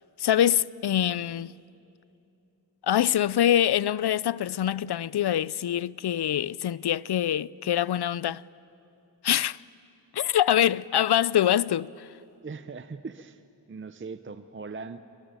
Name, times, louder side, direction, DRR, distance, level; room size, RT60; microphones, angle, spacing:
voice 1, 0.2-1.5 2.9-8.4 9.2-9.6 10.1-12.1, left 11 dB, 65° left, 0.5 m, -24 dB
voice 2, 12.4-13.4 13.7-15.0, right 4 dB, 30° right, 0.6 m, -39 dB
27.5 x 22.5 x 9.1 m
wide cardioid pair, 130°, 42 cm